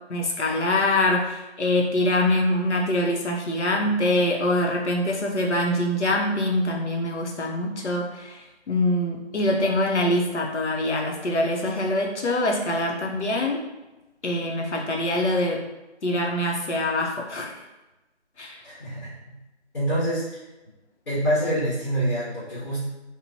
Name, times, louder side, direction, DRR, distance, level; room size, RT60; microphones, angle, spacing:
voice 1, 0.1-13.6 14.2-15.7 16.0-17.5 18.4-18.6, left 1 dB, 80° left, 0 dB, 0.7 m, -24 dB
voice 2, 18.6-19.3 19.7-20.4 21.1-22.8, equal, 50° left, -10 dB, 1.3 m, -26 dB
2.9 x 2.1 x 2.7 m, 1.0 s
figure-of-eight pair, 180°, 34 cm